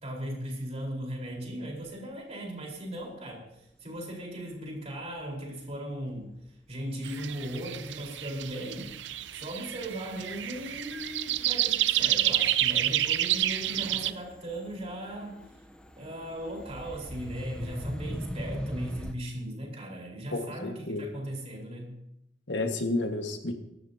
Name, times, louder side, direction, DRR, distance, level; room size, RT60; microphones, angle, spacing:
voice 1, 0.0-6.3 6.7-8.9 9.3-15.4 16.0-22.0, right 1 dB, 35° right, -1 dB, 4.3 m, -38 dB
sound 1, 3.0-3.1 5.1-6.4 6.8-7.4 7.7-19.1, equal, 5° left, 0.8 m, -42 dB
sound 2, 7.0-14.1, right 12 dB, 70° right, 0.5 m, -29 dB
voice 2, 20.3-21.0 22.5-23.5, left 2 dB, 75° left, 5 dB, 1.6 m, -31 dB
23.5 x 12.5 x 2.8 m, 0.79 s
head